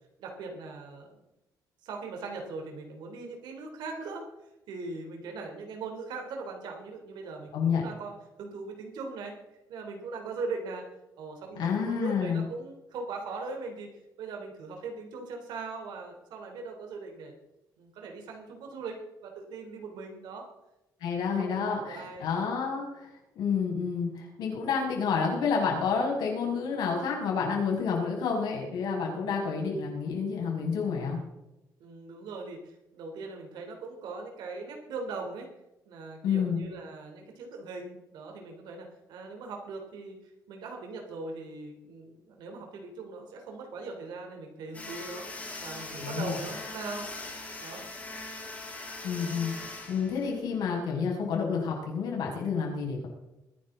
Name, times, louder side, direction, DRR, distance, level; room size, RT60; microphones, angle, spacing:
voice 1, 0.2-1.2 1.8-4.3 4.7-9.3 9.7-10.9 11.2-13.9 14.2-17.3 17.8-19.0 19.2-20.4 21.2-22.3 29.2-29.4 31.8-35.5 35.8-45.3 45.6-47.1 47.6-47.9, right 4 dB, 80° right, 2 dB, 3.3 m, -40 dB
voice 2, 11.5-12.4 21.0-23.1 23.4-31.2 36.2-36.6 46.0-46.4 49.0-53.1, left 6 dB, 80° left, -1 dB, 6.2 m, -29 dB
sound 1, 44.7-50.7, left 2 dB, 20° left, 5.4 m, -41 dB
22.0 x 11.0 x 3.8 m, 0.95 s
cardioid pair, 155°, 7 cm